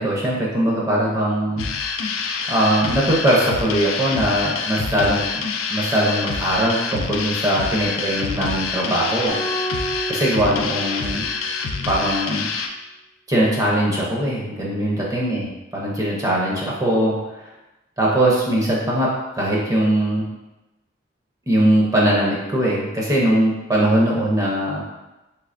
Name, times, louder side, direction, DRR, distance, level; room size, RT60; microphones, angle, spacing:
voice 1, 0.0-1.7 2.5-5.5 5.7-9.4 9.8-11.2 11.9-12.5 13.3-15.5 15.7-17.4 18.0-20.2 21.5-24.8, right 1 dB, 15° right, -5 dB, 0.5 m, -20 dB
sound 1, 1.6-12.7, left 5 dB, 90° left, 0.3 m, -27 dB
sound 2, 9.3-11.6, right 1 dB, 70° right, 1.2 m, -31 dB
3.2 x 3.1 x 2.5 m, 1.0 s
head